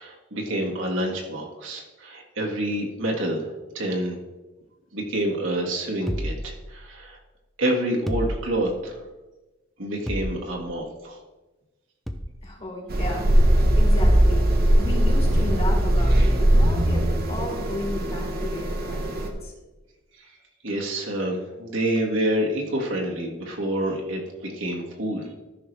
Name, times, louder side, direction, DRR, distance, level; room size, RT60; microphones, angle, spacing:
voice 1, 0.0-4.2 4.9-7.2 7.6-9.0 9.8-11.2 20.2-20.3 20.6-25.3, right 1 dB, 70° right, -1 dB, 1.7 m, -28 dB
sound 1, 6.1-7.2 8.1-9.0 10.1-10.8 12.1-12.5, equal, ahead, 0.6 m, -32 dB
voice 2, 12.4-19.5, left 1 dB, 30° left, -1 dB, 2.4 m, -34 dB
sound 2, 12.9-19.3, right 1 dB, 50° right, 1.1 m, -20 dB
14.0 x 5.9 x 3.3 m, 1.1 s
head